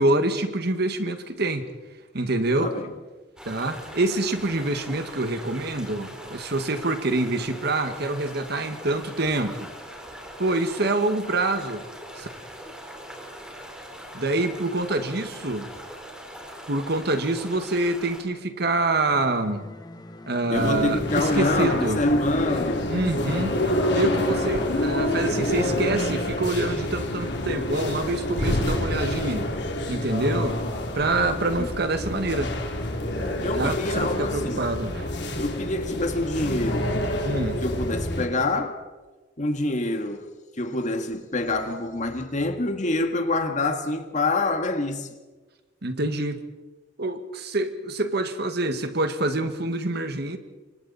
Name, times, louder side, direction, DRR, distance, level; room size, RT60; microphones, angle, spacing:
voice 1, 0.0-1.7 2.1-2.7 3.4-9.7 10.4-11.8 12.2-12.3 14.1-15.7 16.7-19.7 20.3-22.0 22.9-23.6 23.9-29.5 29.9-30.6 31.0-32.5 33.5-35.1 37.3-37.6 45.8-46.4 47.0-50.4, right 2 dB, 60° right, 1.7 m, -26 dB
voice 2, 2.6-2.9 20.5-23.0 31.6-31.7 33.2-34.7 35.4-37.0 37.6-38.8 39.4-40.3 40.6-45.1, left 2 dB, 40° left, 1.8 m, -26 dB
sound 1, 3.4-18.2, equal, 5° right, 4.4 m, -41 dB
sound 2, 19.1-24.7, left 1 dB, 25° left, 1.2 m, -44 dB
sound 3, 20.5-38.3, left 1 dB, 65° left, 3.1 m, -27 dB
28.5 x 24.5 x 4.2 m
head